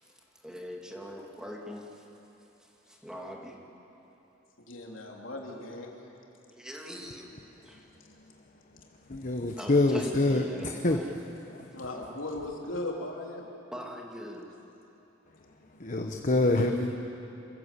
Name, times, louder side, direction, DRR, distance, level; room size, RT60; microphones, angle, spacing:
voice 1, 0.4-2.1 2.6-3.6 6.5-7.3 7.6-7.8 9.6-11.1 13.7-14.5, equal, 5° right, -1 dB, 2.2 m, -42 dB
voice 2, 4.6-5.9 11.7-13.4, left 2 dB, 85° left, -1 dB, 3.2 m, -37 dB
voice 3, 9.1-10.4 10.8-11.0 11.5-11.7 15.8-16.9, left 2 dB, 40° left, 3 dB, 1.1 m, -25 dB
27.0 x 15.0 x 8.3 m, 3.0 s
head